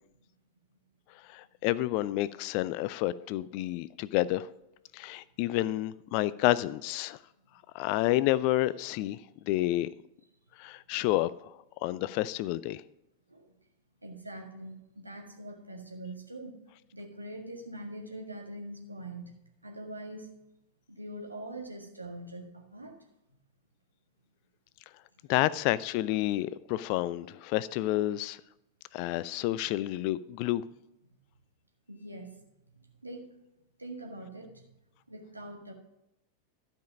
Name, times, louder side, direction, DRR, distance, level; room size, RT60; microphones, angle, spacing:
voice 1, 1.3-4.5 4.9-7.2 7.7-9.2 9.4-9.9 10.6-11.5 11.8-12.8 25.3-28.4 28.9-30.6, left 16 dB, 45° left, 0.3 m, -29 dB
voice 2, 14.0-14.8 15.0-16.6 16.9-19.3 19.6-20.3 20.9-23.0 31.9-32.4 32.7-33.3 33.8-34.7 35.1-35.7, right 1 dB, 85° right, 1.7 m, -43 dB
12.5 x 5.4 x 5.2 m
figure-of-eight pair, 90°, 0 cm